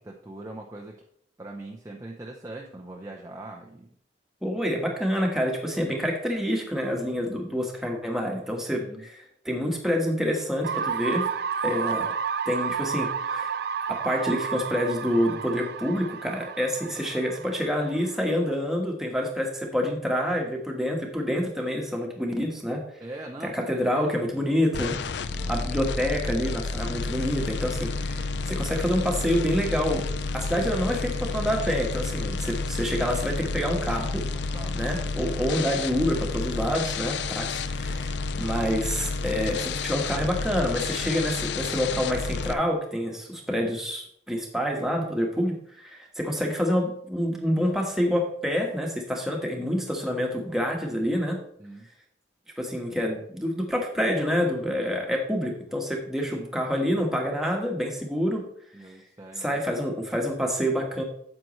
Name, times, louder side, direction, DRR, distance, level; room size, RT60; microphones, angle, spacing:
voice 1, 0.0-1.0 1.4-3.9 4.8-4.9 8.8-9.1 23.0-23.7 23.9-24.1 24.5-25.0 25.3-25.6 34.3-34.9 51.6-51.9 56.3-56.5 58.7-59.6, right 2 dB, 15° right, -1 dB, 0.6 m, -42 dB
voice 2, 4.4-11.3 11.6-12.1 12.5-13.6 13.9-22.8 23.4-25.0 25.5-30.0 30.3-34.3 34.7-51.4 52.6-58.5 59.4-61.0, equal, ahead, 0 dB, 1.4 m, -27 dB
sound 1, 10.6-18.5, right 6 dB, 60° right, 0.4 m, -31 dB
sound 2, 24.7-42.5, left 4 dB, 70° left, 0.4 m, -30 dB
9.2 x 7.5 x 3.1 m, 0.66 s
head